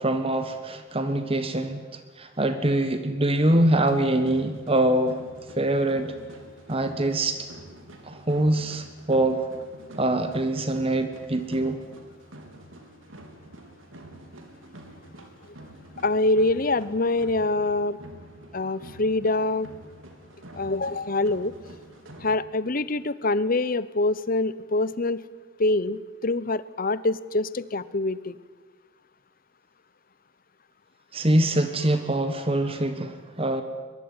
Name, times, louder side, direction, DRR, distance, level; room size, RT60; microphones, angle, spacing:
voice 1, 0.0-5.2 5.6-6.1 6.7-7.5 8.0-9.4 10.0-11.8 31.1-33.6, right 1 dB, 30° right, 9 dB, 1.4 m, -24 dB
sound 1, 3.4-22.3, right 1 dB, 80° right, 3.6 m, -47 dB
voice 2, 16.0-18.0 18.5-19.7 20.5-21.5 22.2-25.2 25.6-28.4, left 2 dB, 45° left, 17 dB, 0.9 m, -25 dB
22.5 x 22.5 x 9.8 m, 1.4 s
head